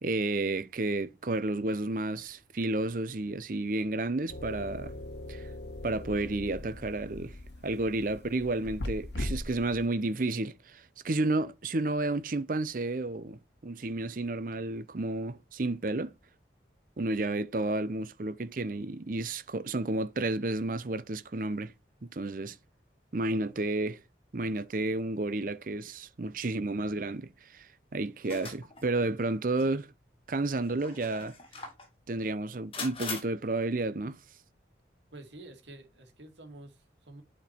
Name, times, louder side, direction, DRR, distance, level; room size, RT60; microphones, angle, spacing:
voice 1, 0.0-4.9 5.3-5.4 5.8-7.4 7.6-16.1 17.0-21.7 22.0-22.6 23.1-24.0 24.3-27.7 27.9-29.9 30.3-31.4 32.1-34.2, right 2 dB, 50° right, 0.6 m, -31 dB
sound 1, 4.3-9.9, left 1 dB, 75° left, 1.3 m, -40 dB
sound 2, 28.2-28.9 29.6-29.7 30.7-31.9 32.7-33.2, left 4 dB, 30° left, 2.0 m, -40 dB
voice 2, 35.1-37.2, right 2 dB, 80° right, 2.1 m, -49 dB
8.6 x 4.4 x 4.5 m
head